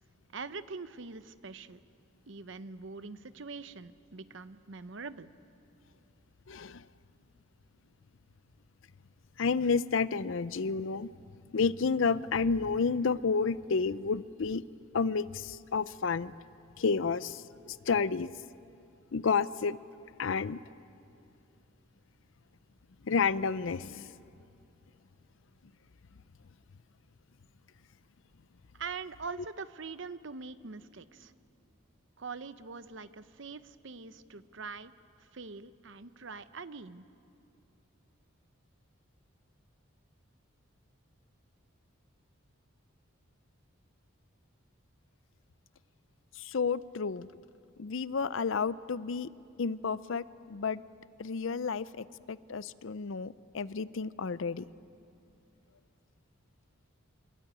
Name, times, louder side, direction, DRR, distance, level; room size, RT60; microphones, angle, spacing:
voice 1, 0.3-1.8 2.3-5.3 28.7-31.3 32.2-34.9 35.3-37.0, right 4 dB, 60° right, 13 dB, 0.8 m, -43 dB
voice 2, 6.5-6.8 9.4-11.1 11.5-14.6 14.9-16.3 16.8-18.3 19.1-19.8 20.2-20.6 23.1-24.1 46.4-47.3 47.8-49.3 49.6-50.8 51.2-54.6, left 5 dB, 65° left, 17 dB, 0.5 m, -30 dB
27.0 x 22.0 x 8.9 m, 2.7 s
head